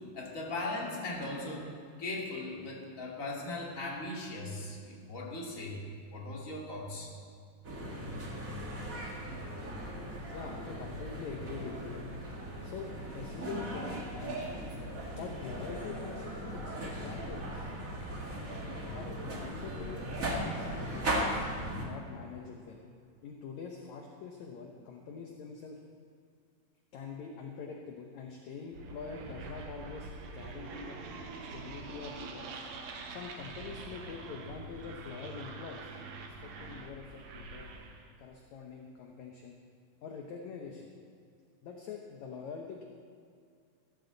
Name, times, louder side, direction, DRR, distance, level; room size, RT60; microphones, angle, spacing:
voice 1, 0.1-1.7 2.0-5.8 6.1-7.1, left 2 dB, 25° left, -3 dB, 2.5 m, -38 dB
sound 1, 7.6-21.9, right 1 dB, 30° right, 1.6 m, -38 dB
voice 2, 10.3-12.0 12.6-14.5 15.1-16.3 16.5-17.6 18.8-21.4 21.7-22.8 23.2-25.8 26.9-31.0 31.4-32.5 33.1-35.9 36.4-37.7 38.2-39.6 40.0-40.9 41.6-42.8, left 5 dB, 65° left, 1 dB, 2.0 m, -44 dB
sound 2, 28.7-38.1, right 3 dB, 65° right, 2.0 m, -45 dB
16.5 x 15.0 x 4.0 m, 2.3 s
omnidirectional pair, 4.2 m